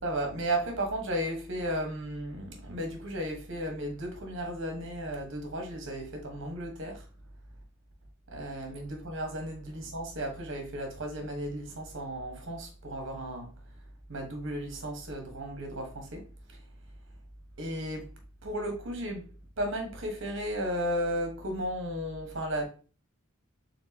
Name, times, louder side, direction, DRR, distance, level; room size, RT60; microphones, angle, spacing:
voice 1, 0.0-7.0 8.3-13.5 14.1-16.2 16.5-16.6 17.6-18.1 18.4-19.3 19.6-22.6, right 1 dB, 60° right, 1.3 m, -34 dB
4.4 x 3.8 x 2.8 m
head